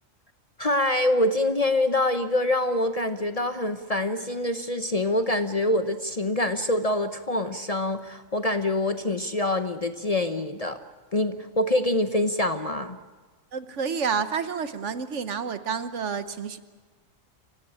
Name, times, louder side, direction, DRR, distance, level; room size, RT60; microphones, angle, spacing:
voice 1, 0.6-10.8 11.1-13.0, left 1 dB, 35° left, 9 dB, 0.8 m, -25 dB
voice 2, 13.5-16.6, right 6 dB, 65° right, 12 dB, 1.4 m, -29 dB
28.0 x 16.0 x 8.7 m, 1.4 s
omnidirectional pair, 1.4 m